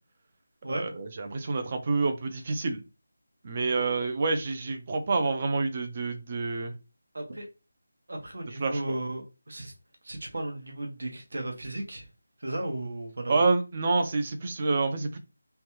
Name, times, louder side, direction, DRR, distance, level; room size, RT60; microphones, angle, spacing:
voice 1, 0.7-2.8 3.4-6.7 8.6-9.0 13.3-15.2, right 3 dB, 30° right, 0.4 m, -28 dB
voice 2, 7.1-7.5 8.1-9.7 10.0-12.1 12.4-13.4, right 1 dB, 65° right, 0.9 m, -35 dB
3.2 x 2.2 x 3.0 m
figure-of-eight pair, 175°, 0 cm